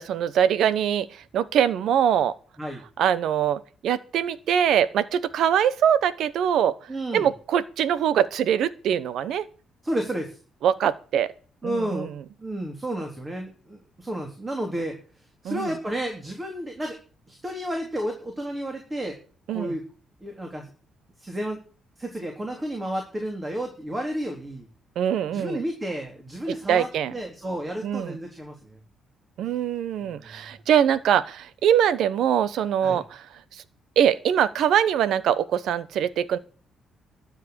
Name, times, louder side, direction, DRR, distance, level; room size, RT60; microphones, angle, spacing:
voice 1, 0.0-2.3 3.0-6.8 7.1-9.5 10.6-11.3 11.6-12.1 15.4-15.7 19.5-19.7 25.0-25.6 26.5-27.1 27.8-28.2 29.4-33.3 33.5-33.6 34.0-36.4, right 9 dB, 75° right, 1.0 m, -23 dB
voice 2, 6.9-7.3 9.8-10.4 11.6-12.1 12.4-14.9 15.4-17.0 17.3-19.2 19.5-19.8 20.2-20.7 21.2-21.6 22.0-24.7 25.3-28.8 30.0-30.4 32.8-33.0, right 1 dB, 20° right, 3.8 m, -31 dB
12.5 x 7.6 x 8.8 m
cardioid pair, 90°, 0 cm